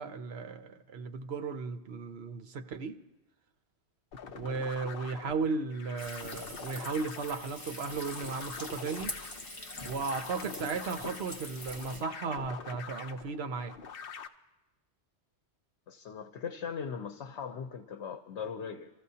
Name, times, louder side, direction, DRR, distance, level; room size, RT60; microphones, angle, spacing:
voice 1, 0.0-3.0 4.3-9.1 9.8-13.7, right 4 dB, 70° right, 1.0 m, -35 dB
sound 1, 4.1-14.3, left 6 dB, 60° left, 0.8 m, -45 dB
Frying (food), 6.0-12.0, left 1 dB, 30° left, 1.5 m, -44 dB
voice 2, 15.9-18.9, left 6 dB, 85° left, 1.1 m, -39 dB
27.5 x 14.5 x 2.8 m
omnidirectional pair, 1.1 m